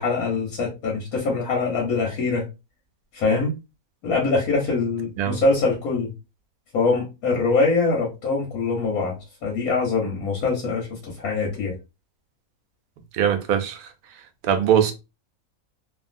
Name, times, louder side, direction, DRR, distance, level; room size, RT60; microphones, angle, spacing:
voice 1, 0.0-2.5 3.1-3.5 4.0-6.1 6.7-11.7, left 3 dB, 85° left, 1.4 m, -23 dB
voice 2, 13.1-13.9 14.5-14.9, right 9 dB, 85° right, 1.1 m, -21 dB
2.9 x 2.5 x 2.5 m
omnidirectional pair, 1.5 m